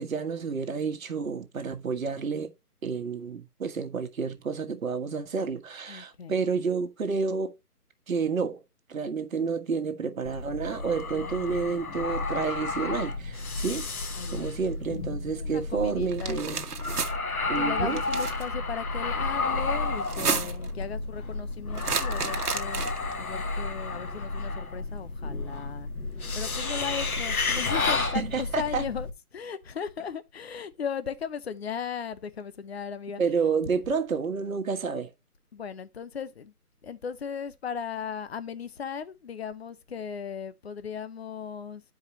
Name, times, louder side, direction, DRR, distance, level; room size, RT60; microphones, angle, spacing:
voice 1, 0.0-2.5 2.8-7.5 8.1-8.6 8.9-13.9 14.3-16.6 17.5-18.0 28.0-28.8 33.2-35.1, right 5 dB, 60° right, 1.5 m, -30 dB
voice 2, 5.9-6.4 11.1-12.0 14.2-14.4 15.3-16.7 17.6-22.9 23.2-25.9 26.3-33.2 35.5-36.5 36.8-41.8, left 7 dB, 45° left, 0.7 m, -37 dB
sound 1, 10.2-29.1, left 3 dB, 65° left, 1.7 m, -31 dB
sound 2, 16.1-17.1 17.9-18.4 20.0-20.7 21.8-23.1, right 6 dB, 75° right, 1.3 m, -31 dB
11.5 x 4.8 x 3.0 m
hypercardioid pair, 160°, 46 cm